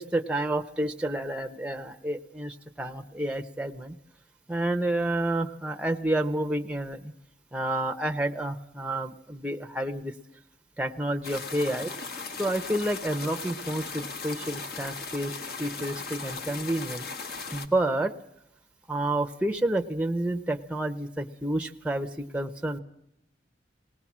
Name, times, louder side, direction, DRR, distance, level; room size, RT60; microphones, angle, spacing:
voice 1, 0.0-3.9 4.5-7.1 7.5-10.1 10.8-11.9 12.4-15.3 15.6-17.0 17.5-18.1 18.9-22.8, right 1 dB, 5° right, 4 dB, 0.8 m, -29 dB
sound 1, 11.2-17.7, left 4 dB, 60° left, 1.5 m, -37 dB
20.0 x 18.5 x 7.3 m, 0.81 s
head